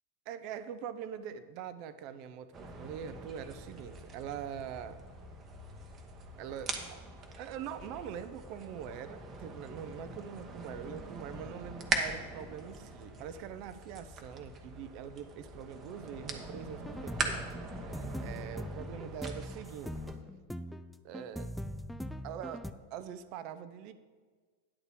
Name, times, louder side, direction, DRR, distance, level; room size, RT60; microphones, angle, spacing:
voice 1, 0.3-5.0 6.4-7.0 7.4-17.5 17.8-20.0 21.0-21.5 22.2-22.6 22.9-23.9, right 8 dB, 45° right, 12 dB, 0.6 m, -43 dB
sound 1, 2.5-20.1, right 3 dB, 25° right, 1.0 m, -42 dB
sound 2, 16.8-22.7, equal, ahead, 0.4 m, -42 dB
9.9 x 4.0 x 7.5 m, 1.5 s
figure-of-eight pair, 90°, 0 cm